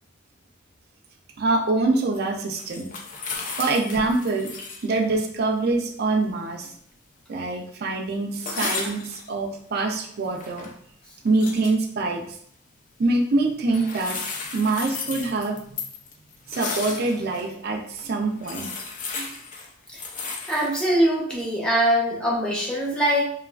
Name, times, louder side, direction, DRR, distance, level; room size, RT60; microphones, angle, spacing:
voice 1, 1.4-2.9 3.6-4.5 4.8-6.7 7.3-10.7 11.2-12.2 13.0-14.2 14.5-15.8 16.5-18.7 19.1-19.3, right 3 dB, 50° right, 2 dB, 0.4 m, -24 dB
sound 1, 2.1-4.9 5.2-5.3 8.4-9.3 10.1-10.7 11.3-11.7 13.7-17.4 18.0-18.1 18.4-20.9, left 4 dB, 40° left, 0.4 m, -34 dB
voice 2, 20.5-23.3, right 1 dB, 5° left, -5 dB, 0.7 m, -22 dB
3.0 x 2.3 x 2.3 m, 0.65 s
head